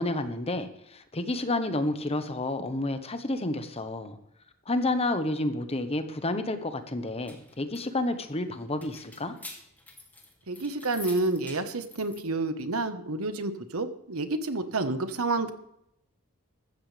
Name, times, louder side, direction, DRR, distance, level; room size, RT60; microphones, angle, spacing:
voice 1, 0.0-4.2 4.7-9.3, left 2 dB, 30° left, 9 dB, 1.2 m, -30 dB
sound 1, 7.0-12.2, left 2 dB, 10° left, 2.6 m, -47 dB
voice 2, 10.5-15.5, right 2 dB, 75° right, 10 dB, 1.3 m, -29 dB
15.5 x 13.0 x 3.4 m, 0.78 s
head